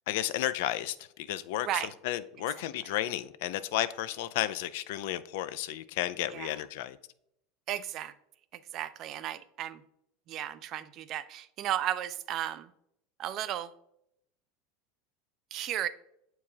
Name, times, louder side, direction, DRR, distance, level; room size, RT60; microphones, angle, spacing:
voice 1, 0.1-7.0, left 13 dB, 70° left, 0.3 m, -33 dB
voice 2, 7.7-8.1 8.5-9.8 10.3-12.7 13.2-13.7 15.5-15.9, right 12 dB, 50° right, 0.4 m, -34 dB
7.4 x 4.6 x 2.7 m
supercardioid pair, 110°, 0 cm